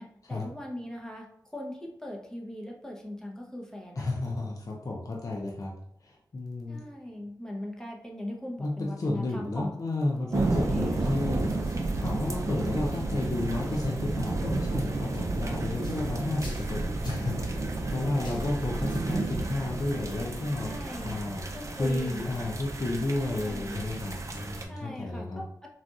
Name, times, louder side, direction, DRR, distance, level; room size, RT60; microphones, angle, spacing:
voice 1, 0.0-4.2 6.7-9.7 10.3-11.3 15.6-15.8 17.9-18.2 20.6-22.2 23.2-23.8 24.7-25.7, left 1 dB, 10° left, -1 dB, 0.8 m, -40 dB
voice 2, 4.0-5.8 6.0-6.8 8.6-11.5 12.0-20.7 21.0-21.4 21.7-25.4, left 2 dB, 50° left, -1 dB, 0.5 m, -32 dB
sound 1, 10.3-24.6, right 2 dB, 40° right, 0.5 m, -32 dB
sound 2, 10.9-24.5, left 1 dB, 75° left, 0.9 m, -48 dB
3.9 x 2.4 x 2.3 m, 0.72 s
wide cardioid pair, 65°, 8 cm